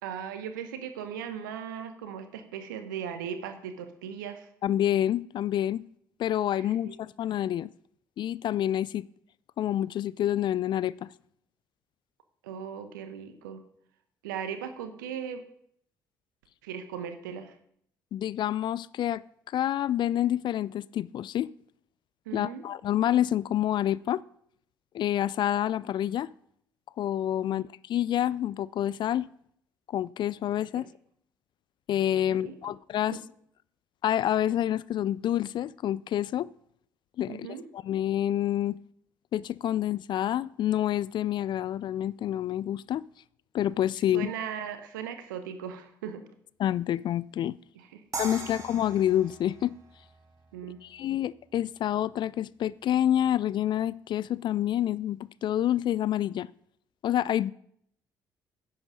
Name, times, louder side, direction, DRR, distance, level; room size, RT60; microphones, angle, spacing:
voice 1, 0.0-4.5 6.5-7.0 12.4-13.6 14.2-15.4 16.6-17.5 22.3-22.6 27.4-27.6 32.3-32.6 33.1-33.2 37.3-37.6 44.1-46.3 47.7-48.0 50.5-50.8, right 8 dB, 75° right, 1.0 m, -38 dB
voice 2, 4.6-5.8 6.2-7.7 8.2-9.1 9.6-11.1 18.1-19.2 19.5-21.5 22.3-24.2 24.9-26.3 27.0-29.3 29.9-30.9 31.9-33.2 34.0-36.5 37.2-37.5 37.7-38.8 39.3-43.0 43.5-44.3 46.6-47.6 48.2-49.7 50.8-56.5 57.0-57.5, left 11 dB, 45° left, 0.3 m, -28 dB
sound 1, 48.1-51.2, right 3 dB, 30° right, 1.8 m, -41 dB
10.5 x 8.0 x 5.0 m
figure-of-eight pair, 50°, 11 cm